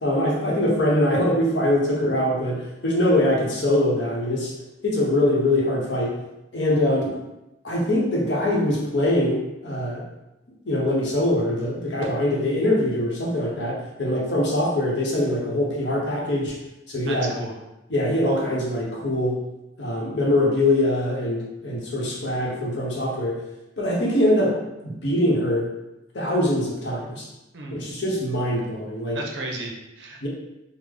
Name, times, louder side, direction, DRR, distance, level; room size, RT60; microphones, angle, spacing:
voice 1, 0.0-4.5 4.8-6.2 6.5-7.1 7.6-10.0 10.7-16.6 16.9-17.3 17.9-19.4 19.8-23.4 23.8-24.6 24.8-25.7 26.1-27.3 27.7-29.2 30.2-30.3, left 1 dB, 75° left, -3 dB, 0.9 m, -23 dB
voice 2, 17.1-17.5 27.5-27.8 29.1-30.3, right 2 dB, 80° right, 0 dB, 0.7 m, -33 dB
3.5 x 2.1 x 3.6 m, 0.94 s
head